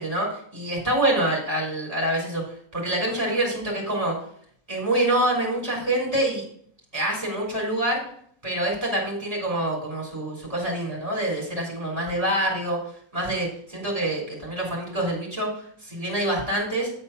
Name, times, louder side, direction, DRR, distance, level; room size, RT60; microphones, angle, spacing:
voice 1, 0.0-2.4 2.7-4.1 4.7-6.4 6.9-8.0 8.4-12.8 13.1-16.9, right 1 dB, 25° right, -3 dB, 3.1 m, -26 dB
9.4 x 4.2 x 5.7 m, 0.62 s
omnidirectional pair, 1.5 m